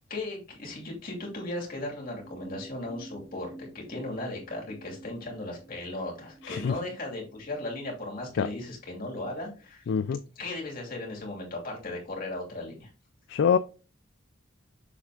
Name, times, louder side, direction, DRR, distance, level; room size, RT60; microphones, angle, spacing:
voice 1, 0.1-9.9 10.3-12.9, left 2 dB, 45° left, 2.8 m, -37 dB
sound 1, 2.2-7.5, right 1 dB, 75° right, 3.9 m, -49 dB
voice 2, 6.4-6.7 8.4-8.5 9.9-10.2 13.3-13.6, left 7 dB, 60° left, 0.3 m, -24 dB
6.9 x 4.2 x 3.7 m
head